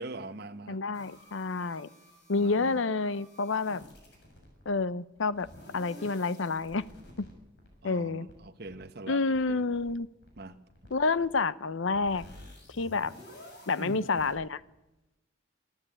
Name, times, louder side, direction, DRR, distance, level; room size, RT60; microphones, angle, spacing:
voice 1, 0.0-0.8 2.3-2.8 7.8-9.6 10.4-10.6 13.8-14.1, right 2 dB, 50° right, 8 dB, 1.2 m, -42 dB
voice 2, 0.7-1.9 2.3-3.8 4.7-5.5 5.7-6.8 7.2-7.3 7.8-8.3 9.1-10.1 10.9-12.2 12.7-13.1 13.7-14.6, left 3 dB, 75° left, 17 dB, 0.7 m, -29 dB
sound 1, 0.9-4.7 5.2-7.3 7.6-7.8 8.1-8.3 8.7-8.8 9.2-9.4 9.7-9.9 10.2-10.4 10.7-10.9 11.2-11.4 11.6-14.3, left 1 dB, 55° left, 6.8 m, -51 dB
25.0 x 12.5 x 9.0 m, 1.0 s
head